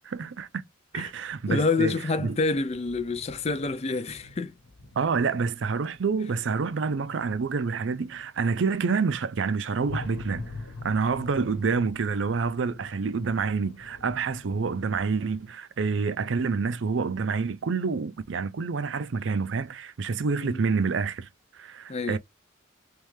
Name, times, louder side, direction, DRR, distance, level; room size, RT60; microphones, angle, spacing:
voice 1, 0.0-0.6 0.9-2.4 4.9-10.5 10.8-21.3 21.5-22.2, right 5 dB, 70° right, 0.5 m, -28 dB
sound 1, 1.2-1.7 2.3-15.5, left 3 dB, 80° left, 1.1 m, -45 dB
voice 2, 1.5-4.5 20.4-20.6 21.9-22.2, left 3 dB, 35° left, 0.5 m, -27 dB
3.4 x 3.1 x 3.2 m
head